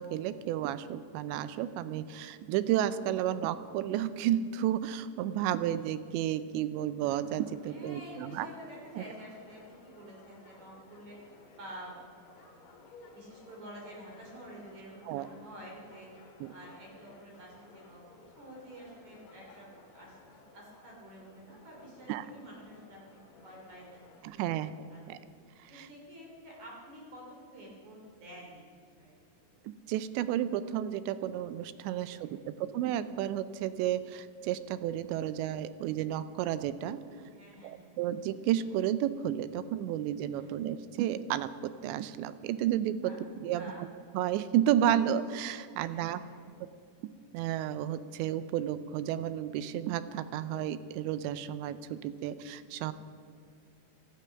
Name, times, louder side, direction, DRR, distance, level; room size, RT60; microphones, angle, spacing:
voice 1, 0.0-8.5 9.0-9.1 15.1-15.3 16.4-16.5 22.1-22.3 24.2-24.7 25.1-25.2 25.7-25.9 29.9-37.0 37.6-43.9 44.1-46.2 47.3-52.9, right 11 dB, 90° right, 13 dB, 2.9 m, -32 dB
sound 1, 7.0-24.2, left 3 dB, 55° left, 2.9 m, -57 dB
voice 2, 7.6-11.2 11.5-12.6 13.0-16.1 16.5-24.6 24.9-25.3 25.7-29.2 29.5-29.6 32.0-32.6 37.3-38.0 40.3-40.5 43.0-43.2 43.5-43.9 45.8-46.5, right 1 dB, 45° right, -2 dB, 4.0 m, -50 dB
17.0 x 12.5 x 5.8 m, 2.3 s
omnidirectional pair, 5.0 m